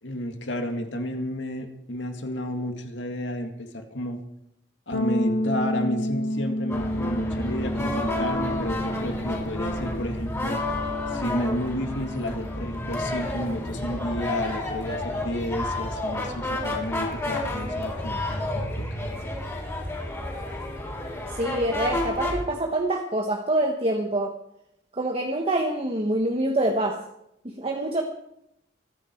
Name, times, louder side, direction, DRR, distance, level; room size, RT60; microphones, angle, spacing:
voice 1, 0.0-4.2 4.9-10.6 11.1-19.3, left 1 dB, 80° left, 5 dB, 2.1 m, -31 dB
sound 1, 4.9-14.6, equal, 65° left, 2.1 m, -31 dB
sound 2, 6.7-22.4, left 1 dB, 15° left, 4.6 m, -30 dB
voice 2, 21.3-24.3 24.9-27.0 27.4-28.0, right 1 dB, 35° right, 2 dB, 1.3 m, -25 dB
24.5 x 10.0 x 4.6 m, 0.79 s
head